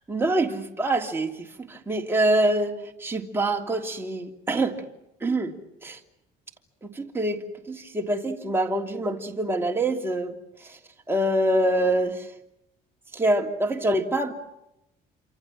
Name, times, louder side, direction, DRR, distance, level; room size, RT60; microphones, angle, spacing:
voice 1, 0.1-2.7 3.0-4.8 5.2-5.5 5.8-6.0 6.8-7.4 7.7-10.8 11.1-12.3 13.1-14.3, right 1 dB, 15° right, 2 dB, 3.0 m, -25 dB
28.0 x 26.5 x 7.6 m, 0.84 s
cardioid pair, 110°, 17 cm